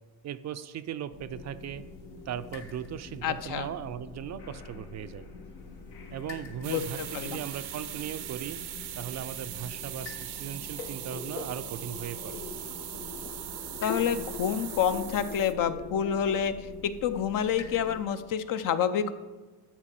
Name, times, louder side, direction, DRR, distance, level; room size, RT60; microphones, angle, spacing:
voice 1, 0.2-1.8 2.3-5.3 6.1-8.6 9.0-12.4, right 9 dB, 45° right, 12 dB, 0.4 m, -38 dB
sound 1, 1.1-18.0, left 4 dB, 85° left, 1.7 m, -43 dB
voice 2, 3.2-3.7 6.6-7.4 13.8-16.5 16.8-19.1, left 8 dB, 55° left, 11 dB, 0.7 m, -28 dB
sound 2, 6.6-15.5, right 13 dB, 80° right, 0.8 m, -40 dB
10.5 x 4.4 x 7.5 m, 1.3 s
cardioid pair, 110°, 38 cm